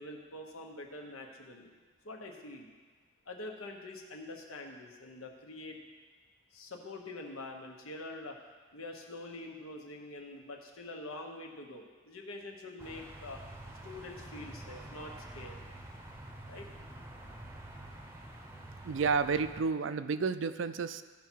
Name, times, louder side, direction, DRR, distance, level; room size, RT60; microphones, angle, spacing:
voice 1, 0.0-1.7 2.0-2.7 3.3-5.8 6.5-8.4 8.7-13.4 13.8-15.6 16.5-16.7, left 2 dB, 85° left, 2 dB, 1.3 m, -45 dB
sound 1, 12.8-19.6, right 1 dB, 10° right, 0.7 m, -47 dB
voice 2, 18.8-21.0, right 5 dB, 60° right, 12 dB, 0.4 m, -31 dB
15.5 x 5.6 x 4.6 m, 1.5 s
head